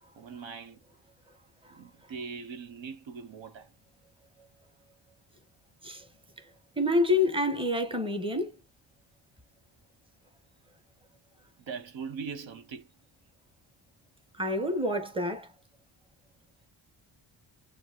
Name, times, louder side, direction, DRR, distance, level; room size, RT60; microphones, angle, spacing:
voice 1, 0.2-0.8 1.7-3.7 11.6-12.9, right 5 dB, 75° right, 1.0 m, -41 dB
voice 2, 6.8-8.5 14.4-15.5, left 2 dB, 10° right, 1.2 m, -27 dB
7.0 x 2.5 x 2.9 m
cardioid pair, 90°, 46 cm